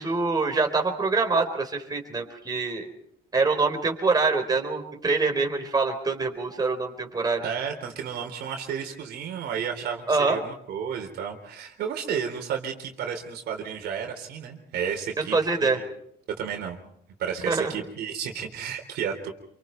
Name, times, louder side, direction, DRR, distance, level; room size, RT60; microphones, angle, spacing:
voice 1, 0.0-2.9 3.3-7.4 10.1-10.4 15.3-15.8 17.5-17.8, right 4 dB, 25° right, 3 dB, 4.1 m, -25 dB
voice 2, 7.4-15.3 15.6-15.9 16.4-16.8 17.2-19.3, right 7 dB, 75° right, 3 dB, 3.7 m, -32 dB
27.5 x 25.0 x 4.5 m, 0.69 s
cardioid pair, 110°, 17 cm